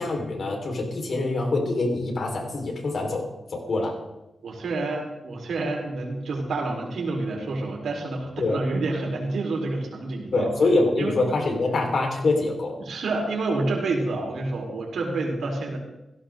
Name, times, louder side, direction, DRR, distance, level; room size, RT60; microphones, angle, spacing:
voice 1, 0.0-4.0 8.4-8.6 10.3-12.8, left 2 dB, 65° left, 1 dB, 4.5 m, -25 dB
voice 2, 4.4-10.5 11.0-11.1 12.8-15.8, right 3 dB, 90° right, 0 dB, 4.4 m, -28 dB
17.0 x 16.5 x 3.9 m, 0.93 s
cardioid pair, 90°, 0 cm